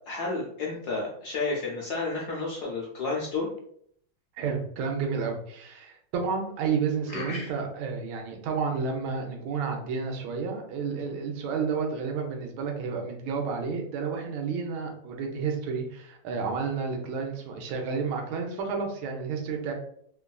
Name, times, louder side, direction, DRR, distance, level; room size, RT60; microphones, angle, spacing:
voice 1, 0.1-3.5 7.1-7.5, left 3 dB, 70° left, -2 dB, 0.9 m, -31 dB
voice 2, 4.4-19.7, right 5 dB, 80° right, 2 dB, 1.4 m, -31 dB
3.4 x 2.4 x 2.2 m, 0.66 s
omnidirectional pair, 2.3 m